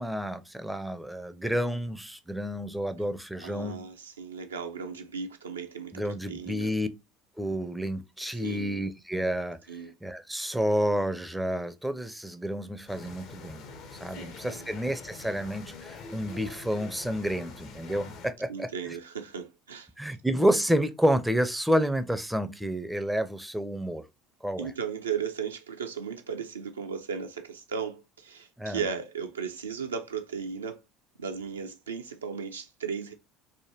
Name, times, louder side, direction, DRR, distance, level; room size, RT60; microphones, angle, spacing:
voice 1, 0.0-3.8 5.9-6.9 7.4-9.6 10.0-13.6 14.0-18.9 20.0-24.0 24.4-24.7 28.6-28.8, equal, 5° right, 0.4 m, -29 dB
voice 2, 3.4-6.7 8.4-8.9 9.7-9.9 14.1-14.7 18.5-19.9 24.6-30.8 31.2-33.1, right 6 dB, 80° right, 0.4 m, -36 dB
sound 1, 12.9-18.3, left 4 dB, 55° left, 0.5 m, -45 dB
3.2 x 2.1 x 2.9 m
figure-of-eight pair, 65°, 0 cm